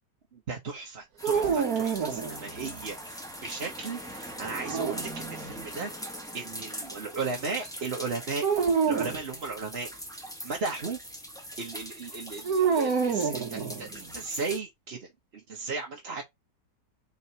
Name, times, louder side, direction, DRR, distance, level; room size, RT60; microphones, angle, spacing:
voice 1, 0.3-8.4 8.9-11.0 11.6-16.2, right 4 dB, 40° right, 1.3 m, -36 dB
sound 1, 1.2-14.6, equal, ahead, 1.6 m, -41 dB
sound 2, 1.2-2.8 4.4-5.6 8.4-9.2 12.4-14.1, right 6 dB, 60° right, 1.5 m, -28 dB
4.8 x 4.8 x 4.1 m
omnidirectional pair, 1.9 m